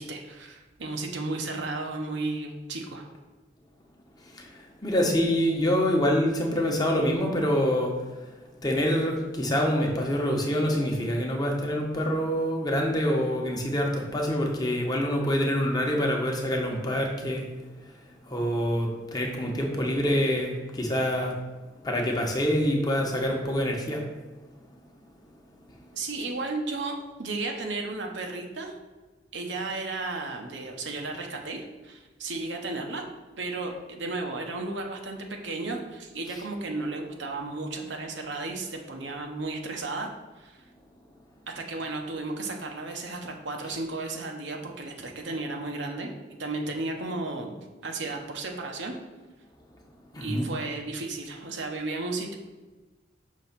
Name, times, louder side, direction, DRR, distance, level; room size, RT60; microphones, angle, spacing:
voice 1, 0.0-3.0 25.9-28.8 29.3-33.1 33.4-40.6 41.5-46.1 46.4-47.5 47.8-49.0 50.2-52.3, right 3 dB, 75° right, 2 dB, 0.9 m, -34 dB
voice 2, 4.3-7.9 8.6-17.4 18.3-21.3 21.8-24.0 50.1-50.5, equal, 20° left, 0 dB, 0.9 m, -26 dB
6.2 x 3.1 x 5.8 m, 1.2 s
head